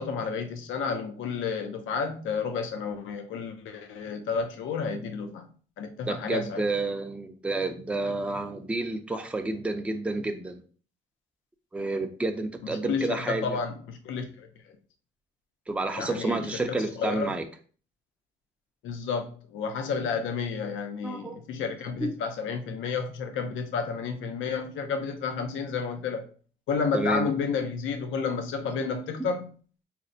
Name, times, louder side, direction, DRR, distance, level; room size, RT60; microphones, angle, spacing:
voice 1, 0.0-5.5 5.8-6.7 12.6-14.5 16.0-17.4 18.8-26.3 26.7-29.5, left 5 dB, 80° left, 0.5 m, -31 dB
voice 2, 6.1-10.6 11.7-13.6 15.7-17.4 21.0-21.4 22.0-22.2 26.9-27.3, right 2 dB, 5° right, 0.4 m, -30 dB
4.1 x 2.1 x 2.6 m
cardioid pair, 90°, 20 cm